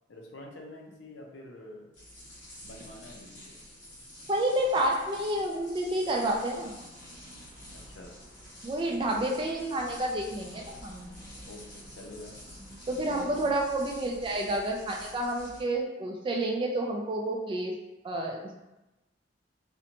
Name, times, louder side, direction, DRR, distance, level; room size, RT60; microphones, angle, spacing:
voice 1, 0.1-1.9 2.6-3.5 7.7-8.2 11.5-12.3 13.1-13.4, left 1 dB, 70° left, 0 dB, 0.5 m, -47 dB
sound 1, 1.9-15.6, equal, 45° left, 1.2 m, -48 dB
voice 2, 4.3-6.8 8.6-11.1 12.9-17.7 18.0-18.4, right 1 dB, 25° right, 0 dB, 0.3 m, -29 dB
2.5 x 2.1 x 2.8 m, 0.98 s
head